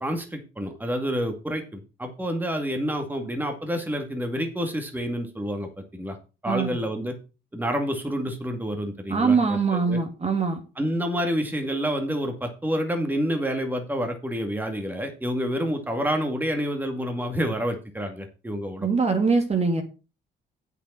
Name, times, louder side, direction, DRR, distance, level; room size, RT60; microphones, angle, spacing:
voice 1, 0.0-6.2 6.4-7.2 7.5-10.0 10.8-18.9, equal, 10° right, 5 dB, 2.2 m, -28 dB
voice 2, 6.5-6.8 9.1-10.6 18.8-19.8, right 4 dB, 35° right, 4 dB, 2.3 m, -23 dB
8.3 x 6.9 x 5.7 m, 0.32 s
cardioid pair, 90°, 20 cm